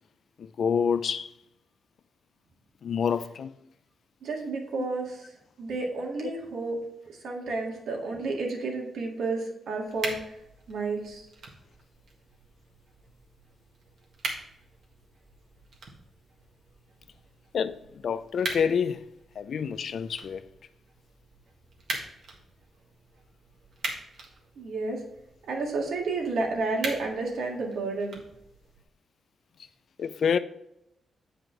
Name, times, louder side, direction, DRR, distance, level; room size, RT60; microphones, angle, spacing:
voice 1, 0.4-1.3 2.8-3.6 4.8-4.9 6.2-6.3 17.5-19.1 19.4-20.4 30.0-30.4, left 7 dB, 65° left, 0.4 m, -28 dB
voice 2, 4.2-5.2 5.6-6.8 7.2-10.2 10.7-11.2 24.6-25.0 25.5-28.2, right 3 dB, 80° right, 1.9 m, -31 dB
sound 1, 9.9-28.8, right 3 dB, 65° right, 1.6 m, -42 dB
8.0 x 5.0 x 4.5 m
cardioid pair, 110°, 0 cm